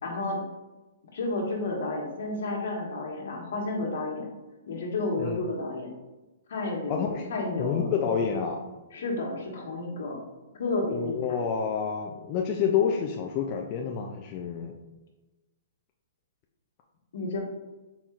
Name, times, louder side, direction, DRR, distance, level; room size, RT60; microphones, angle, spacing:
voice 1, 0.0-0.4 1.1-4.3 4.7-5.9 6.5-7.0 7.3-7.9 8.9-10.2 10.6-11.2 17.1-17.4, left 2 dB, 70° left, 0 dB, 1.2 m, -31 dB
voice 2, 6.9-7.3 7.6-8.6 10.9-14.7, left 7 dB, 30° left, 1 dB, 0.3 m, -28 dB
4.3 x 4.1 x 2.4 m, 1.1 s
hypercardioid pair, 160°, 0 cm